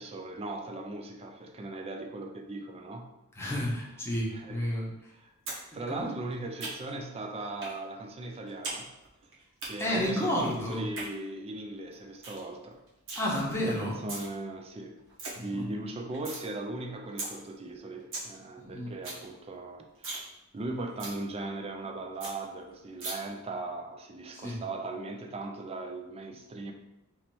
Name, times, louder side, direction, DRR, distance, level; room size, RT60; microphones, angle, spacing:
voice 1, 0.0-3.1 3.4-3.7 4.3-5.3 5.7-8.9 9.6-12.8 13.6-15.0 15.3-20.1 20.5-26.7, right 2 dB, 25° right, 4 dB, 0.4 m, -38 dB
voice 2, 3.3-4.9 5.7-6.2 9.8-10.9 13.2-14.0 15.4-15.7 18.6-18.9 24.3-24.6, equal, 10° left, -5 dB, 0.9 m, -31 dB
sound 1, 5.5-5.6 5.9-7.0 7.6-7.8 8.1-8.8 9.0-9.7 10.7-11.1 11.5-11.6 11.9-12.0 12.2-12.4 12.7-13.2 13.8-14.3 14.7-14.8 15.0-15.3 15.7-16.4 16.8-16.9 17.2-17.3 17.7-17.8 17.9-18.3 18.6-18.7 18.9-19.2 19.5-19.6 19.9-20.3 20.6-20.7 21.0-21.2 21.6-21.7 21.9-22.0 22.2-22.3 23.0-23.1, right 3 dB, 60° right, 1.1 m, -38 dB
3.1 x 2.8 x 4.4 m, 0.90 s
head